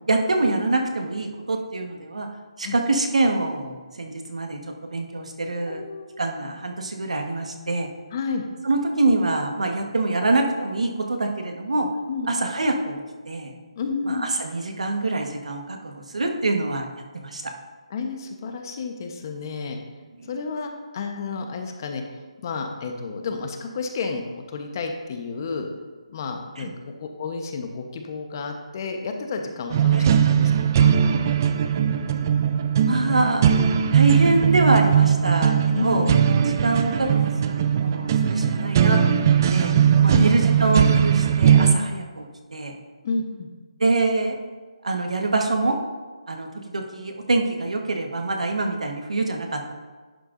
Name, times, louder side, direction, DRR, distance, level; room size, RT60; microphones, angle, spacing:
voice 1, 0.1-2.3 2.6-5.8 6.2-7.9 8.6-11.9 12.3-13.5 14.0-16.9 17.1-17.6 20.2-20.3 26.6-26.7 29.9-30.1 32.8-33.5 33.9-36.1 36.4-39.2 39.5-42.7 43.8-44.4 44.8-45.8 46.3-49.7, right 2 dB, 90° right, 3 dB, 1.4 m, -25 dB
voice 2, 5.7-6.1 8.1-8.4 12.1-12.3 13.8-14.3 17.9-19.8 20.3-22.0 22.4-24.2 24.5-25.7 26.1-30.5 30.8-30.9 34.2-34.3 35.3-35.4 35.8-36.2 40.1-40.3 43.0-43.5, left 4 dB, 35° left, 4 dB, 1.0 m, -31 dB
sound 1, 29.7-41.7, right 8 dB, 30° right, 0.4 m, -19 dB
11.0 x 7.8 x 2.6 m, 1.3 s
hypercardioid pair, 160°, 3 cm